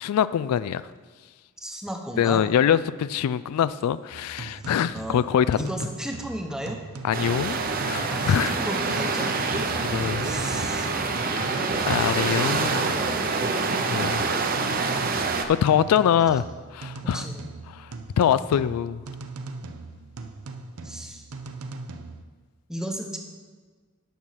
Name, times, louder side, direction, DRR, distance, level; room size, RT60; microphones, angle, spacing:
voice 1, 0.0-0.9 2.2-5.6 7.0-7.6 7.8-8.5 9.9-10.2 11.3-11.5 11.9-12.9 13.9-14.3 15.6-16.5 16.7-17.2 17.8-17.9 18.2-19.0, left 9 dB, 90° left, 0.3 m, -23 dB
voice 2, 1.6-2.4 4.6-5.2 5.6-6.8 8.1-11.0 11.5-13.7 17.0-17.5 20.8-21.3 22.7-23.2, equal, 5° right, 0.8 m, -36 dB
sound 1, 4.1-22.2, right 3 dB, 85° right, 0.6 m, -39 dB
sound 2, 7.1-15.4, right 4 dB, 40° right, 0.7 m, -26 dB
9.2 x 6.1 x 5.7 m
head